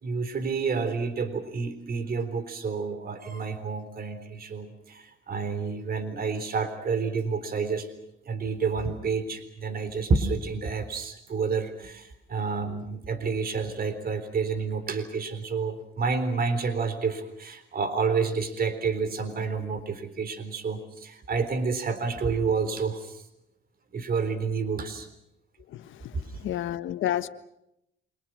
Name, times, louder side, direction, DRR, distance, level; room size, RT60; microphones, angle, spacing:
voice 1, 0.0-7.9 8.3-23.2 23.9-25.1, right 5 dB, 50° right, 11 dB, 3.9 m, -29 dB
voice 2, 26.1-27.3, left 12 dB, 80° left, 10 dB, 1.5 m, -30 dB
29.0 x 25.0 x 6.2 m, 0.81 s
cardioid pair, 90°, 20 cm